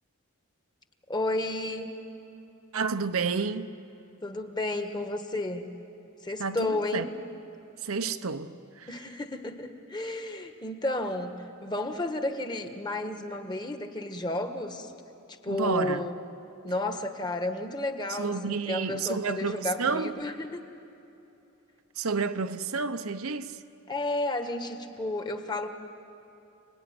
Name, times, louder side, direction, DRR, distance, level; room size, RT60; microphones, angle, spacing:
voice 1, 1.1-1.9 4.2-5.7 6.2-7.1 8.9-14.9 15.4-16.2 16.6-20.6 23.9-25.7, left 2 dB, 20° left, 1.5 m, -32 dB
voice 2, 2.7-3.7 6.4-7.1 7.8-8.9 15.5-16.1 18.1-20.1 22.0-23.6, right 5 dB, 75° right, 0.9 m, -30 dB
30.0 x 20.0 x 9.7 m
head